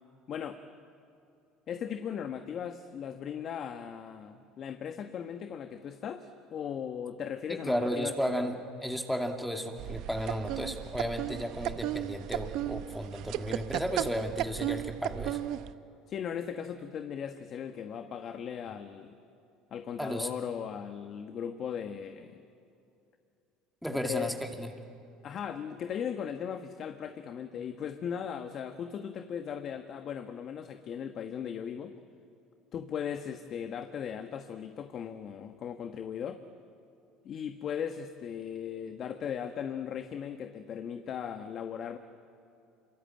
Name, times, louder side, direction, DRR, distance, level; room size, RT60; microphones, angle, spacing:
voice 1, 0.3-0.6 1.7-8.5 16.1-19.2 19.7-22.4 23.9-24.3 25.2-32.0 32.7-36.4 37.2-42.0, left 8 dB, 50° left, 7 dB, 1.4 m, -38 dB
voice 2, 7.5-15.4 20.0-20.3 23.8-24.7, equal, ahead, 4 dB, 2.5 m, -34 dB
sound 1, 9.8-15.7, right 13 dB, 65° right, 0.8 m, -35 dB
26.5 x 23.5 x 8.9 m, 2.7 s
supercardioid pair, 90°, 0 cm